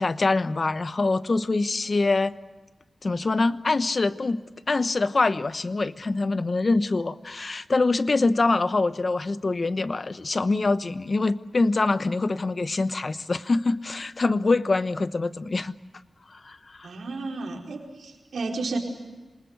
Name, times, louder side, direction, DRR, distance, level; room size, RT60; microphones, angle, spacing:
voice 1, 0.0-2.4 3.0-4.4 4.7-15.7 16.3-16.9, left 3 dB, 50° left, 13 dB, 1.0 m, -24 dB
voice 2, 16.8-18.8, right 3 dB, 90° right, 0 dB, 4.6 m, -32 dB
27.0 x 20.0 x 8.1 m, 1.2 s
cardioid pair, 60°, 0 cm